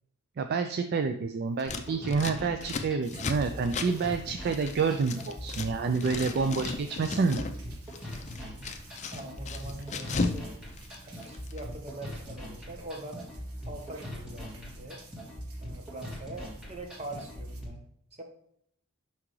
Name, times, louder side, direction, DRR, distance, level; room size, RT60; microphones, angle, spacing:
voice 1, 0.4-7.5, right 4 dB, 45° right, 7 dB, 0.3 m, -28 dB
Scissors, 1.6-5.7 5.9-7.5 7.8-10.4 10.7-11.6, left 3 dB, 30° left, 0.5 m, -35 dB
sound 1, 1.7-17.7, equal, 5° right, 1.7 m, -42 dB
sound 2, 3.0-17.6, right 2 dB, 75° right, 1.2 m, -52 dB
voice 2, 8.2-8.6 9.1-10.6 11.0-13.3 13.6-15.0 15.6-17.8 18.2-18.3, right 2 dB, 30° right, 3 dB, 1.1 m, -43 dB
5.9 x 5.7 x 3.2 m, 0.71 s
head